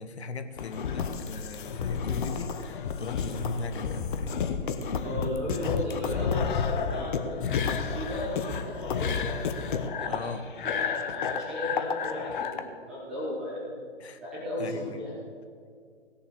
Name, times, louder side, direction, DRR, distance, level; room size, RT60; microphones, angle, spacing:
voice 1, 0.0-4.7 10.0-10.4 14.0-14.2 14.6-15.0, left 4 dB, 65° left, 9 dB, 1.3 m, -38 dB
sound 1, 0.6-12.6, left 6 dB, 45° left, 1.0 m, -31 dB
voice 2, 5.0-9.4 10.0-10.3 10.6-13.9 14.2-15.1, left 1 dB, ahead, -11 dB, 0.3 m, -35 dB
17.0 x 7.0 x 7.2 m, 2.2 s
figure-of-eight pair, 130°, 36 cm